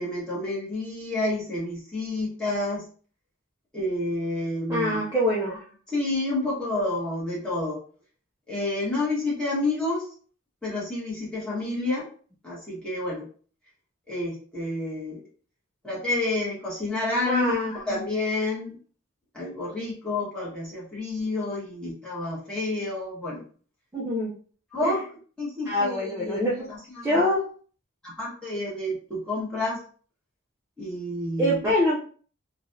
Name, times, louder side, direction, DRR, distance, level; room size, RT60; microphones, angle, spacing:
voice 1, 0.0-2.8 3.7-5.2 5.5-5.6 5.9-7.8 8.5-10.0 10.6-12.1 12.4-13.3 14.1-15.2 15.8-18.8 19.3-23.4 24.7-25.0 25.4-27.3 28.0-29.8 30.8-31.6, left 2 dB, 5° left, -8 dB, 1.4 m, -29 dB
voice 2, 4.7-5.5 17.3-17.7 23.9-24.3 24.8-24.9 25.7-26.7 27.0-27.4 31.4-32.0, equal, 15° right, -6 dB, 0.5 m, -24 dB
3.2 x 2.4 x 2.7 m, 0.43 s
head